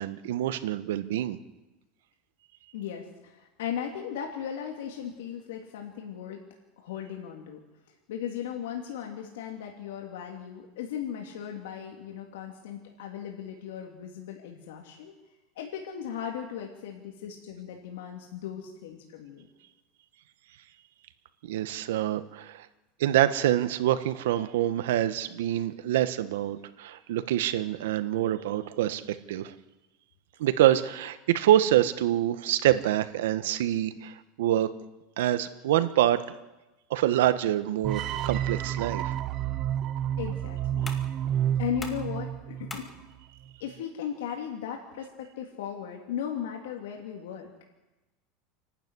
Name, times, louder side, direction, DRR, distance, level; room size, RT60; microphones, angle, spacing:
voice 1, 0.0-1.4 21.4-22.7 23.0-29.5 30.4-34.7 35.2-36.4 36.9-39.1, right 12 dB, 90° right, 12 dB, 1.4 m, -26 dB
voice 2, 2.7-6.4 6.8-7.6 8.1-15.2 15.5-19.5 40.2-40.9 41.6-42.9 43.6-47.6, left 8 dB, 90° left, 2 dB, 3.0 m, -37 dB
sound 1, 37.8-42.9, right 10 dB, 35° right, 0.9 m, -30 dB
sound 2, 39.3-46.3, left 3 dB, 15° left, 2.2 m, -49 dB
28.5 x 12.0 x 9.8 m, 1.1 s
supercardioid pair, 155°, 0 cm